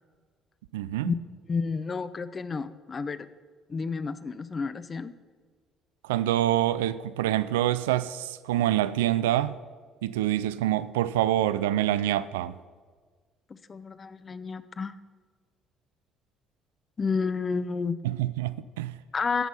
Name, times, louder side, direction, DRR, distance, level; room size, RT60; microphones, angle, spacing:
voice 1, 0.7-1.1 6.0-9.6 10.0-12.6 18.0-18.9, right 13 dB, 80° right, 0.3 m, -26 dB
voice 2, 1.5-3.3 3.7-5.1 13.5-15.0 17.0-18.0 19.1-19.5, left 4 dB, 35° left, 0.6 m, -30 dB
15.0 x 6.2 x 5.5 m
hypercardioid pair, 50°, 0 cm